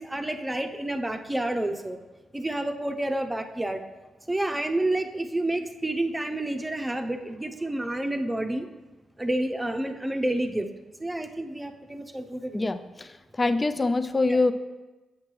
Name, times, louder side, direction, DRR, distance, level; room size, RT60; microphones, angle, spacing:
voice 1, 0.0-2.0 2.3-3.8 4.3-8.7 9.2-10.7 11.0-12.6 13.4-13.6 14.3-14.4, right 1 dB, 15° right, 4 dB, 0.8 m, -29 dB
voice 2, 12.5-13.1 13.4-14.5, left 3 dB, 30° left, 10 dB, 0.5 m, -24 dB
8.5 x 5.8 x 3.2 m, 1.1 s
supercardioid pair, 50°, 0 cm